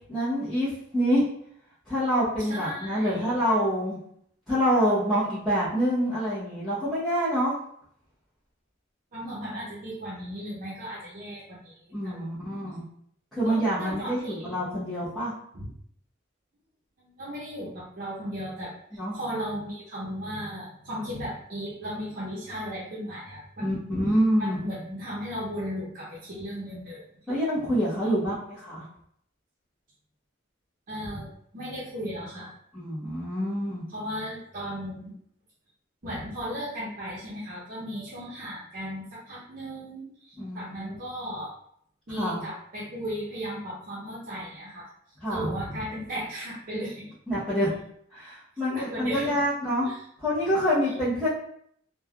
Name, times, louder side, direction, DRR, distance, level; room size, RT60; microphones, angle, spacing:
voice 1, 0.1-1.2 1.9-4.0 4.5-7.5 11.9-12.8 13.3-15.3 18.9-19.2 23.6-24.6 27.3-28.9 32.7-33.8 40.4-40.9 42.1-42.4 45.2-45.5 47.3-47.7 48.1-49.9 50.2-51.3, equal, ahead, -16 dB, 1.0 m, -26 dB
voice 2, 2.4-3.3 9.1-11.8 12.0-12.3 13.4-14.6 15.5-15.7 17.0-18.7 19.1-23.7 24.4-27.1 28.0-28.1 30.9-32.5 33.9-35.1 36.0-41.5 42.1-44.9 45.3-47.1 48.7-49.4 49.8-50.0, equal, 45° right, -6 dB, 0.7 m, -36 dB
3.3 x 2.2 x 2.3 m, 0.67 s
head